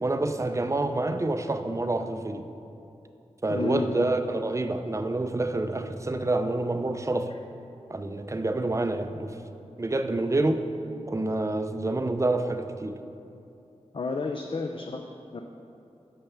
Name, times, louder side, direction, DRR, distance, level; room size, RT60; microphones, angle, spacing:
voice 1, 0.0-2.5 3.4-7.3 7.9-9.4 9.8-10.6 11.1-13.0, right 2 dB, 25° right, 8 dB, 0.5 m, -27 dB
voice 2, 3.5-4.1 13.9-15.0 15.3-15.4, left 3 dB, 50° left, 3 dB, 0.4 m, -31 dB
5.9 x 5.5 x 7.0 m, 2.7 s
cardioid pair, 55°, 12 cm